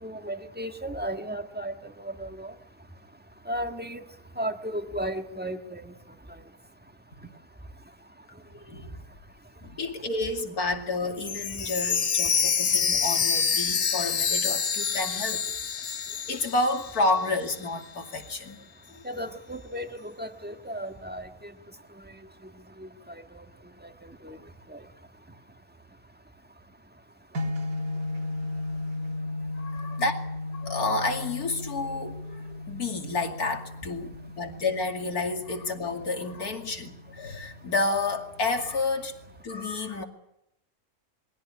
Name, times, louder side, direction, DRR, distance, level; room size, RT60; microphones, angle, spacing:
voice 1, 0.0-2.5 3.4-4.0 4.3-5.9 19.0-21.5 22.0-22.2 22.8-23.4 23.8-24.4 24.7-24.8, right 1 dB, 5° right, 6 dB, 1.5 m, -35 dB
voice 2, 8.3-9.0 9.6-15.4 15.9-18.6 18.9-19.0 29.5-30.2 30.5-39.2 39.4-40.0, left 3 dB, 80° left, 4 dB, 3.0 m, -30 dB
Chime, 11.2-17.2 17.5-17.6 18.1-18.2, left 6 dB, 60° left, 1.5 m, -27 dB
sound 1, 27.3-39.4, left 2 dB, 65° right, 1.9 m, -36 dB
22.5 x 17.0 x 9.9 m, 0.82 s
omnidirectional pair, 1.6 m